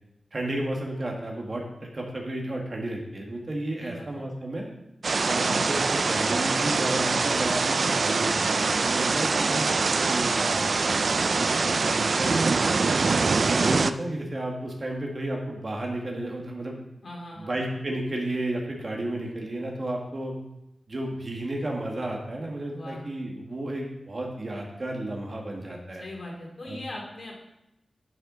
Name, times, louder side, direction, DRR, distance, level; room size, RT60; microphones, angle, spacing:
voice 1, 0.3-1.6 1.9-4.7 5.2-11.0 11.7-12.6 13.2-16.8 17.4-20.3 20.9-26.0 26.6-26.8, right 1 dB, 40° right, 0 dB, 1.7 m, -32 dB
voice 2, 3.8-4.2 11.4-12.3 17.0-17.6 22.7-23.0 26.0-27.3, left 1 dB, 55° left, -2 dB, 2.7 m, -41 dB
sound 1, 5.0-13.9, right 4 dB, 55° right, 0.3 m, -24 dB
11.0 x 5.8 x 3.9 m, 0.87 s
wide cardioid pair, 105°, 0 cm